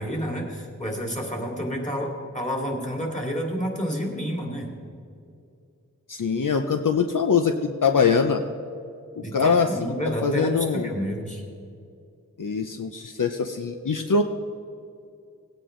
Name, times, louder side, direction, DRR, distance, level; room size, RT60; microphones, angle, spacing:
voice 1, 0.0-4.7 9.2-11.4, equal, 20° left, -1 dB, 3.0 m, -29 dB
voice 2, 6.1-8.4 9.3-9.9 10.2-10.9 12.4-14.2, left 5 dB, 70° left, 6 dB, 0.7 m, -23 dB
18.5 x 9.1 x 3.7 m, 2.4 s
wide cardioid pair, 40°, 33 cm